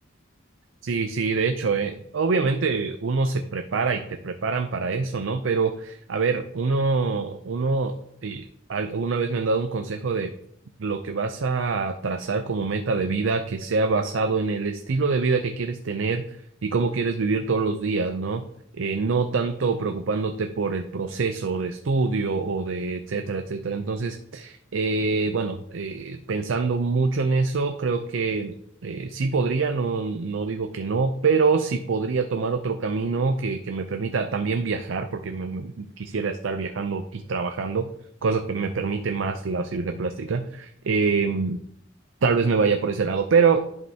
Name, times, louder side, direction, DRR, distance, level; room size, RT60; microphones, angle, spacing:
voice 1, 0.8-7.9 8.2-8.4 8.7-10.3 10.8-16.4 16.6-18.4 18.7-28.5 28.8-37.9 38.2-41.6 42.2-43.6, right 4 dB, 80° right, 6 dB, 0.5 m, -25 dB
10.5 x 5.4 x 2.8 m, 0.70 s
head